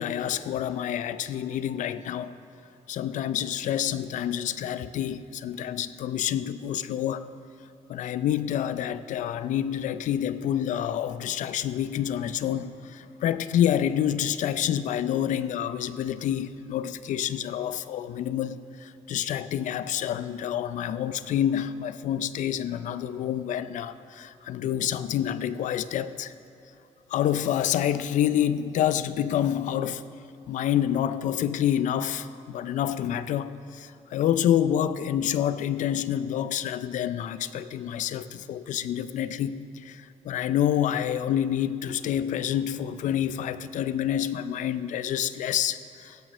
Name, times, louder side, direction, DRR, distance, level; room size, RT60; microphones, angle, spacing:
voice 1, 0.0-2.3 2.9-7.3 7.9-26.3 27.1-30.0 30.5-46.2, left 10 dB, 75° left, 14 dB, 0.5 m, -28 dB
15.5 x 6.2 x 6.0 m, 2.8 s
cardioid pair, 130°, 13 cm